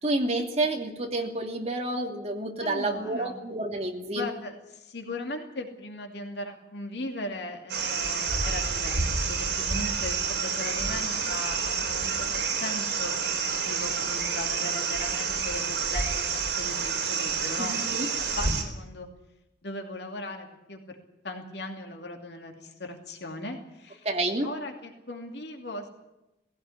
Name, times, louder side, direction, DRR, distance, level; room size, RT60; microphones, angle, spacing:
voice 1, 0.0-4.3 17.6-18.1 24.0-24.5, right 2 dB, 35° right, 2 dB, 2.9 m, -29 dB
voice 2, 2.6-3.4 4.1-16.2 16.6-17.8 18.4-19.1 19.6-21.0 21.2-24.1 24.4-25.9, left 2 dB, 70° left, 3 dB, 2.6 m, -38 dB
sound 1, 7.7-18.6, right 5 dB, 65° right, 4.4 m, -29 dB
19.0 x 16.5 x 10.0 m, 0.94 s
head